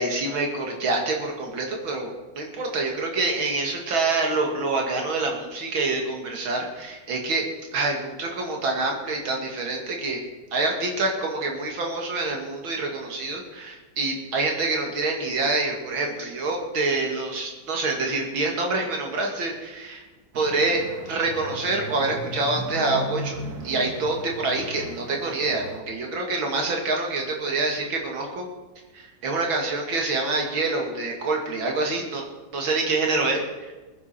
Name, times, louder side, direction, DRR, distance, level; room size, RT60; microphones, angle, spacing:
voice 1, 0.0-7.4 7.7-10.2 10.5-20.0 20.3-23.4 23.6-28.5 28.9-32.2 32.5-33.7, right 3 dB, 85° right, 1 dB, 2.9 m, -26 dB
sound 1, 20.3-25.8, right 2 dB, 55° right, 1.8 m, -37 dB
20.5 x 10.0 x 4.4 m, 1.2 s
omnidirectional pair, 2.1 m